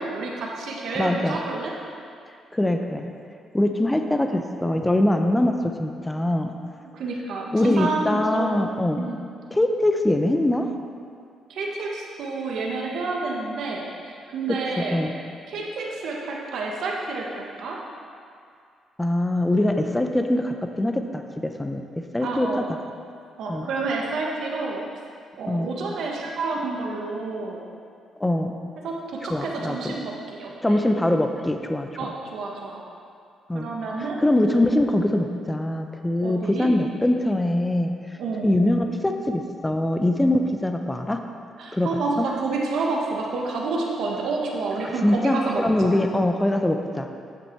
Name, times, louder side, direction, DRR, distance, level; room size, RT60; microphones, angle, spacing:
voice 1, 0.0-1.7 6.8-8.7 8.9-9.3 11.5-15.0 15.5-17.8 22.2-22.6 23.4-24.8 25.4-27.6 28.8-30.8 32.0-32.8 33.5-34.2 36.2-36.7 38.2-38.6 41.6-45.9, right 3 dB, 70° right, -2 dB, 1.3 m, -29 dB
voice 2, 0.9-1.4 2.5-3.1 3.5-5.5 5.8-6.5 7.5-9.0 9.5-10.7 14.8-15.1 19.0-22.6 23.5-23.7 25.5-25.7 28.2-28.5 29.3-30.0 30.6-32.1 33.5-33.7 34.0-37.9 38.4-41.2 41.7-41.9 42.2-42.3 45.0-47.1, left 1 dB, 10° left, 5 dB, 0.7 m, -23 dB
9.0 x 6.9 x 4.5 m, 2.3 s
cardioid pair, 90°, 0 cm